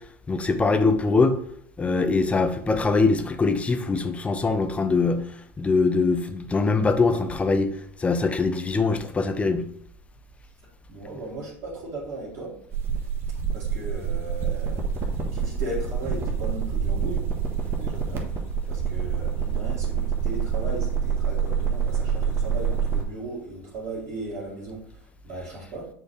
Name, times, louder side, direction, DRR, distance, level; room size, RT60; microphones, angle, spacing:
voice 1, 0.3-1.3 1.8-5.2 5.6-7.7 8.0-9.6, left 4 dB, 20° left, 8 dB, 0.7 m, -22 dB
voice 2, 10.9-12.5 13.5-14.8 15.3-17.2 17.7-18.2 18.7-25.8, right 2 dB, 50° right, -8 dB, 2.2 m, -36 dB
sound 1, 12.7-23.0, right 6 dB, 35° right, 1.3 m, -27 dB
7.0 x 4.3 x 3.3 m, 0.64 s
hypercardioid pair, 85°, 7 cm